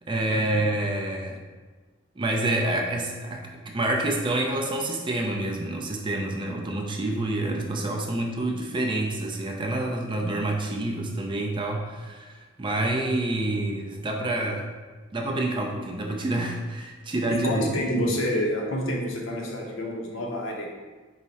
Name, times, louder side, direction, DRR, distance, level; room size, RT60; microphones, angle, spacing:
voice 1, 0.1-1.4 2.2-3.5 3.7-14.7 15.1-17.6, right 1 dB, 25° right, 1 dB, 0.4 m, -27 dB
voice 2, 17.3-20.7, equal, 75° left, 0 dB, 0.7 m, -28 dB
4.6 x 2.0 x 4.0 m, 1.3 s
head